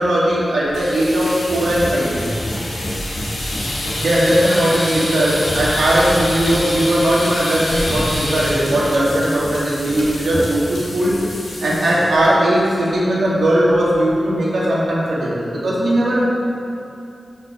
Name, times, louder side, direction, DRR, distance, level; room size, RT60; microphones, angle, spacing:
voice 1, 0.0-2.2 3.9-11.2 11.6-16.2, right 1 dB, 85° right, -7 dB, 2.1 m, -18 dB
sonic postcard Daniel Sebastian, 0.7-12.3 12.6-12.9 13.2-13.3 13.6-14.1, left 1 dB, 90° left, 2.1 m, -26 dB
6.0 x 5.7 x 6.9 m, 2.6 s
cardioid pair, 50°, 0 cm